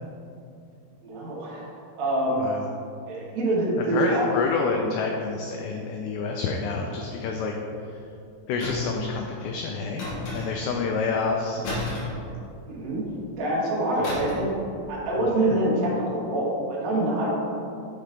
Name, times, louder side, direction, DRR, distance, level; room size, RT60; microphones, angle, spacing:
voice 1, 1.0-2.5 3.1-4.2 12.7-13.0 13.3-14.5 14.9-17.3, right 1 dB, 80° right, -6 dB, 1.5 m, -25 dB
voice 2, 3.9-7.5 8.5-10.1 10.3-11.9, left 4 dB, 90° left, 1 dB, 2.4 m, -28 dB
sound 1, 8.6-9.1 10.0-10.8 11.6-12.8 14.0-14.6 14.8-15.0, left 2 dB, 60° left, 2.3 m, -33 dB
7.4 x 3.3 x 5.0 m, 2.5 s
omnidirectional pair, 5.5 m